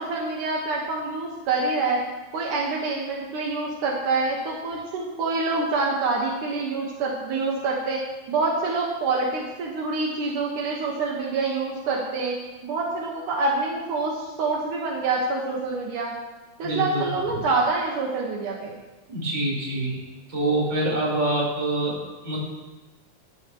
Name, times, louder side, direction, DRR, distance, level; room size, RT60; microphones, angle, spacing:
voice 1, 0.0-2.0 2.3-8.0 8.3-12.3 12.6-16.1 16.6-18.7, right 3 dB, 80° right, -2 dB, 3.1 m, -26 dB
voice 2, 16.6-17.1 19.1-20.0 20.3-22.4, right 1 dB, 35° right, -4 dB, 5.6 m, -25 dB
20.5 x 14.0 x 3.2 m, 1.2 s
omnidirectional pair, 3.6 m